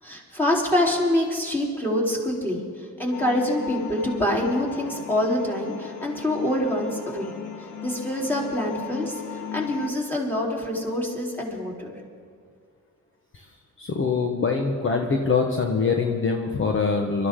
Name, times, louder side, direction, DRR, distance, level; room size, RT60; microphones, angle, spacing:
voice 1, 0.0-7.3 7.6-11.9, left 1 dB, 5° left, -2 dB, 3.7 m, -26 dB
sound 1, 3.1-9.9, left 8 dB, 85° left, 1.5 m, -37 dB
voice 2, 13.8-17.3, left 4 dB, 40° left, 2 dB, 1.3 m, -24 dB
23.5 x 13.5 x 3.8 m, 2.1 s
cardioid pair, 90°, 30 cm